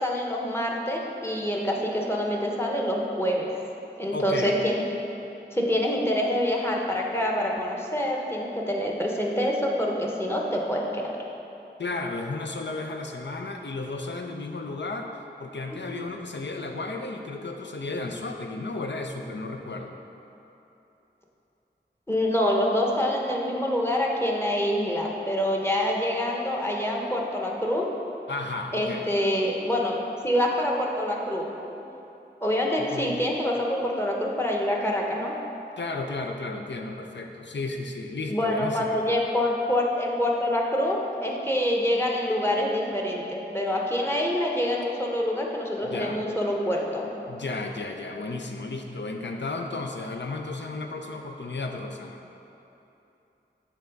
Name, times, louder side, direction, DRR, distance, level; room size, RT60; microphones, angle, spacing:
voice 1, 0.0-3.5 4.0-4.8 5.5-11.0 15.9-16.0 22.1-27.8 28.7-30.0 30.2-31.5 32.4-35.3 38.3-47.1, left 1 dB, 15° left, -1 dB, 0.9 m, -26 dB
voice 2, 4.1-4.6 11.8-15.1 15.4-19.9 28.3-29.0 32.8-33.1 35.8-39.0 45.8-46.2 47.3-52.2, left 3 dB, 70° left, 3 dB, 0.6 m, -33 dB
7.3 x 3.5 x 5.2 m, 2.9 s
wide cardioid pair, 50°, 19 cm